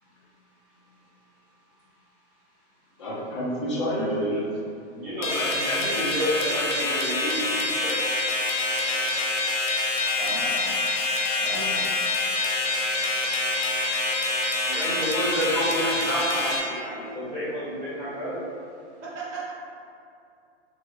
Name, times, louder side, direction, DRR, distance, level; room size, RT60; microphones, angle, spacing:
voice 1, 3.0-4.4 10.2-10.7 11.3-11.9, equal, 25° left, -6 dB, 0.4 m, -30 dB
voice 2, 3.9-4.4 5.0-8.0 14.7-18.4, equal, 20° right, -10 dB, 0.8 m, -30 dB
sound 1, 5.2-16.6, left 2 dB, 75° left, 0.7 m, -26 dB
voice 3, 8.7-9.1 19.0-19.5, right 5 dB, 70° right, -6 dB, 1.2 m, -37 dB
3.1 x 2.2 x 3.2 m, 2.5 s
hypercardioid pair, 170°, 36 cm